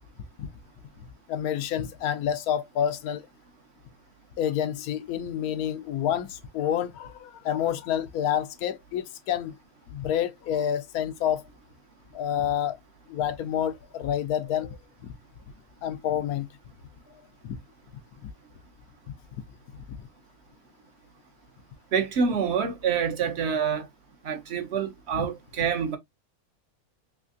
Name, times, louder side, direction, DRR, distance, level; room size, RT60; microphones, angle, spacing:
voice 1, 1.3-3.3 4.4-9.6 9.9-11.4 12.1-12.8 13.1-14.8 15.8-16.5 17.4-17.6 25.1-25.3, left 10 dB, 90° left, 1.1 m, -28 dB
voice 2, 21.9-23.9 24.2-26.0, right 6 dB, 55° right, 0.9 m, -27 dB
3.4 x 3.1 x 2.4 m
omnidirectional pair, 1.5 m